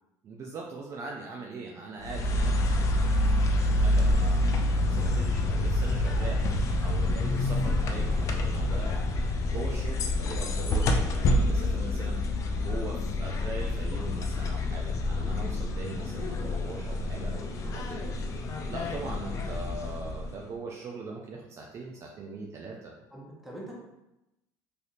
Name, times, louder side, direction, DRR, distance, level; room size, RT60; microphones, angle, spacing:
voice 1, 0.2-3.1 3.6-6.4 6.8-9.0 9.4-12.2 12.5-18.2 18.7-22.9, right 3 dB, 35° right, -1 dB, 0.3 m, -41 dB
sound 1, 2.0-20.5, left 1 dB, 40° left, 0.3 m, -27 dB
voice 2, 23.1-23.7, right 1 dB, 5° right, -4 dB, 0.7 m, -44 dB
3.3 x 2.7 x 2.4 m, 0.93 s
cardioid pair, 135°, 8 cm